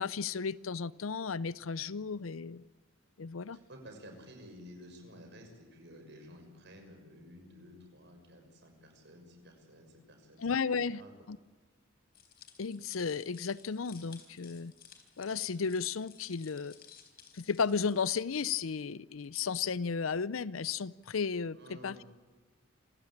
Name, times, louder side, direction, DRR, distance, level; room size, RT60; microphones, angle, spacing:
voice 1, 0.0-2.6 3.2-3.6 10.4-11.0 11.3-11.4 12.6-14.7 15.2-16.7 17.3-22.0, left 5 dB, 85° left, 19 dB, 0.6 m, -34 dB
voice 2, 3.5-11.1 21.5-22.1, equal, 60° right, 4 dB, 6.4 m, -53 dB
sound 1, 12.1-18.1, left 8 dB, 50° left, 4.1 m, -57 dB
27.0 x 16.0 x 8.8 m, 1.4 s
head